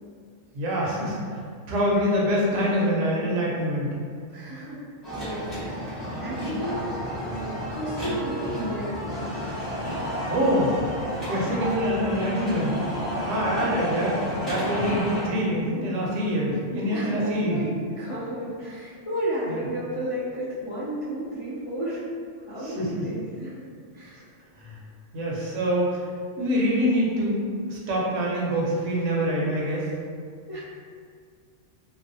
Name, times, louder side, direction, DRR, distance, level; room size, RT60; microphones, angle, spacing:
voice 1, 0.5-1.2 1.7-3.9 10.3-10.8 11.3-12.8 13.2-17.6 19.5-19.6 22.6-22.8 24.6-24.8 25.1-26.0 26.4-29.9, equal, 80° right, -4 dB, 1.0 m, -25 dB
voice 2, 4.3-4.8 5.1-9.3 14.8-15.0 16.9-22.0 22.5-23.6 23.9-24.3 30.5-30.6, right 1 dB, 55° left, -12 dB, 0.3 m, -33 dB
sound 1, 5.0-15.3, equal, ahead, 0.6 m, -31 dB
2.5 x 2.1 x 2.5 m, 2.1 s
omnidirectional pair, 1.3 m